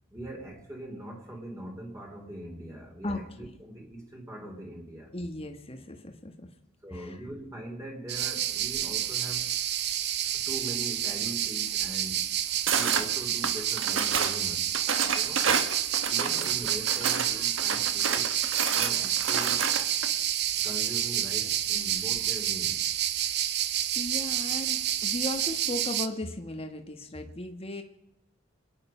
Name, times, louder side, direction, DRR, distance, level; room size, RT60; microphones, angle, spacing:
voice 1, 0.1-5.1 6.8-9.5 10.3-12.3 12.7-14.7 15.0-15.5 16.1-18.3 18.7-19.7 20.6-22.8, right 1 dB, 15° right, 0 dB, 2.9 m, -41 dB
voice 2, 3.0-3.5 5.1-6.5 6.9-7.2 16.3-16.6 23.2-23.3 23.9-27.8, left 1 dB, 30° left, 5 dB, 1.5 m, -37 dB
sound 1, 8.1-26.1, right 11 dB, 55° right, 0.9 m, -29 dB
sound 2, 12.7-13.1 13.4-14.4 14.7-17.3 17.6-20.1, right 6 dB, 70° right, 1.5 m, -29 dB
26.5 x 9.8 x 5.6 m, 0.84 s
head